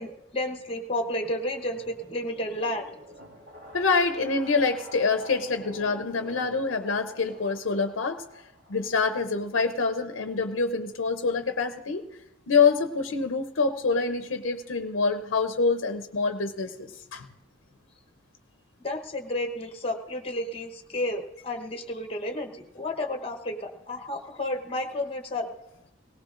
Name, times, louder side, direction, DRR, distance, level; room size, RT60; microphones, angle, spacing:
voice 1, 0.0-2.8 18.8-25.5, left 1 dB, 30° left, 6 dB, 1.0 m, -31 dB
sound 1, 1.4-9.6, right 1 dB, 65° right, 2.8 m, -47 dB
voice 2, 3.7-8.2 8.7-12.0 12.5-17.3, left 4 dB, 85° left, 8 dB, 0.6 m, -26 dB
18.0 x 17.0 x 2.5 m, 0.89 s
head